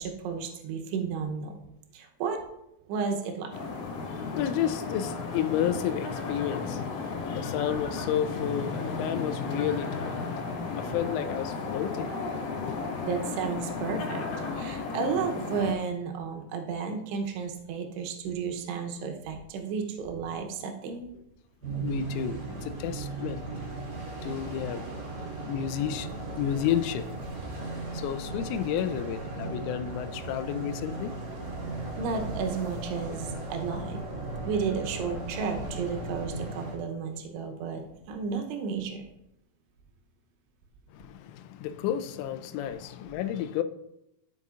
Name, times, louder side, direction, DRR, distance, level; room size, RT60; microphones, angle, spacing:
voice 1, 0.0-1.6 1.9-2.4 2.9-3.5 13.0-14.3 14.6-21.1 32.0-34.0 34.5-39.0, right 5 dB, 75° right, 2.6 m, -32 dB
sound 1, 3.5-15.7, left 4 dB, 70° left, 3.4 m, -34 dB
voice 2, 4.0-13.1 21.8-23.4 24.2-24.8 25.4-26.1 26.4-27.4 27.9-31.1 40.9-43.6, left 10 dB, 90° left, 3.1 m, -32 dB
sound 2, 21.6-36.8, right 2 dB, 40° right, 2.0 m, -36 dB
13.5 x 5.4 x 2.4 m
omnidirectional pair, 5.6 m